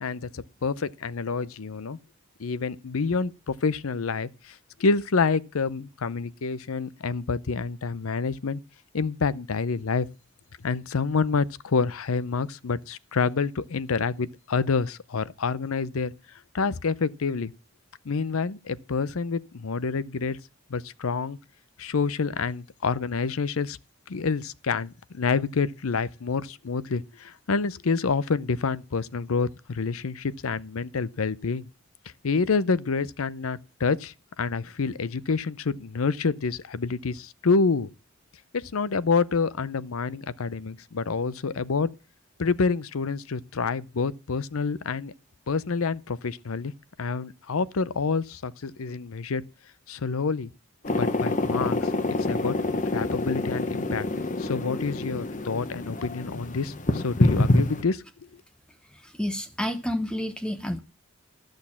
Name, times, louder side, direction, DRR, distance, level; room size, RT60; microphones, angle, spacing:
voice 1, 0.0-2.0 2.4-8.6 8.9-10.1 10.6-16.1 16.5-17.5 18.1-20.4 20.7-21.4 21.8-23.8 24.1-31.7 32.2-37.9 38.5-41.9 42.4-45.1 45.5-46.7 47.0-49.4 49.9-50.5 50.9-51.9 52.2-52.5 52.9-54.1 54.4-58.0, left 4 dB, 85° left, 0.6 m, -27 dB
sound 1, 50.8-57.8, left 2 dB, 35° left, 1.0 m, -26 dB
voice 2, 59.0-60.8, left 1 dB, 5° left, 0.9 m, -30 dB
13.5 x 6.5 x 7.2 m
head